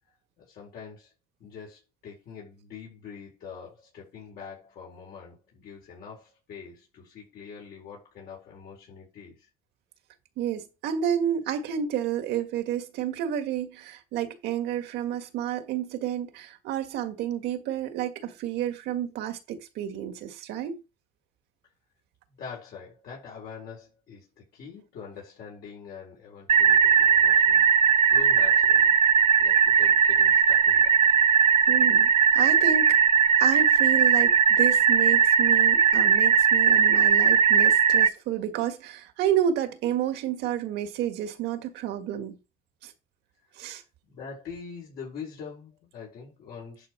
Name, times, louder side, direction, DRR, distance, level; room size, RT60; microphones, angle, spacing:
voice 1, 0.4-1.1 1.4-9.5 22.4-27.8 28.1-29.0 29.4-31.0 43.6-43.8 44.1-46.9, left 6 dB, 65° left, 4.5 m, -44 dB
voice 2, 10.4-20.8 31.7-33.0 33.4-42.4 42.8-42.9 43.6-43.8, right 9 dB, 85° right, 1.8 m, -30 dB
sound 1, 26.5-38.1, right 7 dB, 35° right, 0.7 m, -19 dB
11.0 x 4.7 x 4.6 m
cardioid pair, 110°, 17 cm